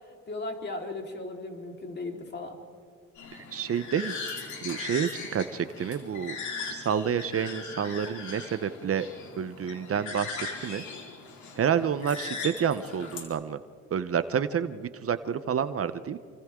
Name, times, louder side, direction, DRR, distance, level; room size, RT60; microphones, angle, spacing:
voice 1, 0.0-2.6, left 2 dB, 35° left, 1 dB, 4.1 m, -37 dB
sound 1, 3.2-13.2, left 4 dB, 70° left, 4.3 m, -39 dB
voice 2, 3.5-6.4 6.7-9.1 9.4-10.8 11.6-13.6 13.9-16.2, right 8 dB, 50° right, 12 dB, 0.9 m, -29 dB
28.0 x 25.0 x 3.8 m, 2.3 s
cardioid pair, 90°, 30 cm